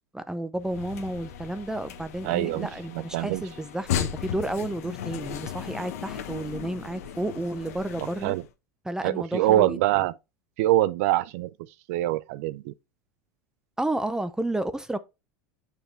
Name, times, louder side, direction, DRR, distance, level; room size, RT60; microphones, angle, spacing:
voice 1, 0.1-8.4 8.8-9.8 13.8-15.0, right 1 dB, 5° right, 0.6 m, -31 dB
sound 1, 0.6-8.5, left 9 dB, 75° left, 1.1 m, -36 dB
voice 2, 2.2-3.4 8.2-8.4 9.0-10.1 10.6-11.5 11.9-12.7, right 15 dB, 65° right, 0.4 m, -24 dB
6.6 x 4.7 x 3.2 m
hypercardioid pair, 95°, 8 cm